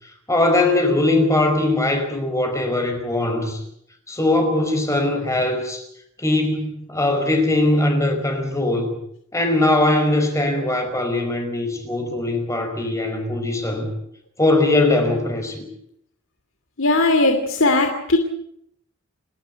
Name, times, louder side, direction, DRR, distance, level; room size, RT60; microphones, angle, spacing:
voice 1, 0.0-3.6 4.1-5.8 6.2-9.0 9.3-13.9 14.4-15.7, left 2 dB, 15° left, 4 dB, 5.1 m, -20 dB
voice 2, 16.8-18.2, left 2 dB, 70° left, 5 dB, 2.7 m, -18 dB
29.5 x 13.0 x 9.3 m, 0.72 s
head